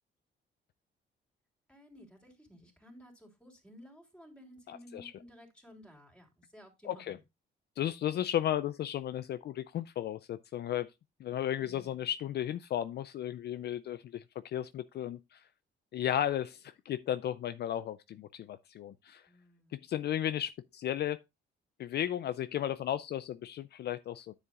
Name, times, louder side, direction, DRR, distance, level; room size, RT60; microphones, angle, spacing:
voice 1, 1.7-7.2 11.6-12.0 19.2-19.8, equal, 5° left, 3.3 m, -55 dB
voice 2, 4.7-5.1 6.9-7.2 7.8-10.9 11.2-15.4 15.9-19.3 19.7-21.2 21.8-24.3, left 11 dB, 55° left, 0.4 m, -34 dB
9.7 x 7.5 x 2.4 m
cardioid pair, 90°, 20 cm